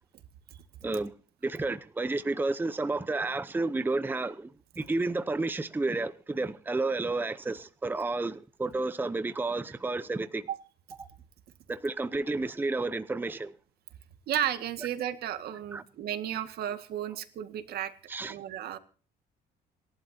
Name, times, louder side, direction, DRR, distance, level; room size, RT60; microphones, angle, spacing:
voice 1, 1.4-4.5 4.8-10.5 11.0-11.1 11.7-13.5 15.7-15.8 18.1-18.4, right 3 dB, 10° right, 0.8 m, -31 dB
voice 2, 14.3-17.9 18.3-18.8, right 10 dB, 70° right, 1.9 m, -33 dB
27.5 x 11.5 x 2.8 m
cardioid pair, 110°, 17 cm